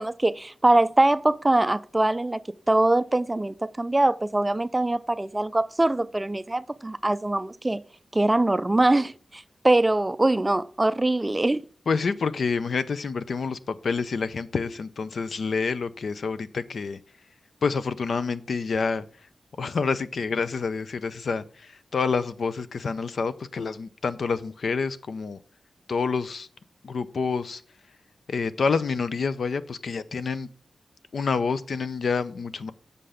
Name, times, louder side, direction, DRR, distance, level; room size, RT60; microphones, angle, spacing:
voice 1, 0.0-7.8 8.1-11.6, right 2 dB, 15° right, 0.3 m, -23 dB
voice 2, 11.9-17.0 17.6-19.1 19.6-25.4 25.9-26.5 26.8-27.6 28.3-30.5 31.1-32.7, left 5 dB, 70° left, 0.5 m, -28 dB
7.7 x 6.7 x 4.9 m
wide cardioid pair, 140°, 0 cm